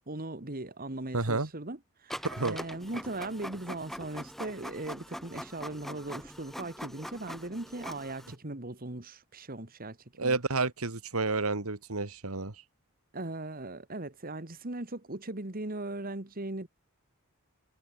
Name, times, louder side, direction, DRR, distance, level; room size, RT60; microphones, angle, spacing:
voice 1, 0.1-10.4 13.1-16.7, right 2 dB, 40° right, 1.9 m, -39 dB
voice 2, 1.1-1.5 2.2-2.6 10.2-12.5, right 3 dB, 80° right, 1.9 m, -30 dB
Printer, 2.1-8.3, equal, ahead, 7.9 m, -43 dB
head